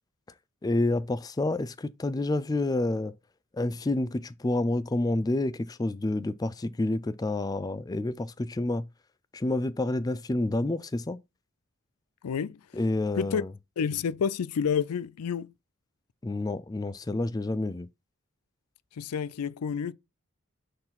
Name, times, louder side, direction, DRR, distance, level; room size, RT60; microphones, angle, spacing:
voice 1, 0.6-3.1 3.5-8.8 9.3-11.2 12.7-13.5 16.2-17.9, left 2 dB, 15° left, 0.3 m, -29 dB
voice 2, 12.2-12.6 13.1-13.4 13.8-15.5 19.0-19.9, left 7 dB, 90° left, 0.4 m, -29 dB
6.5 x 4.0 x 5.6 m
head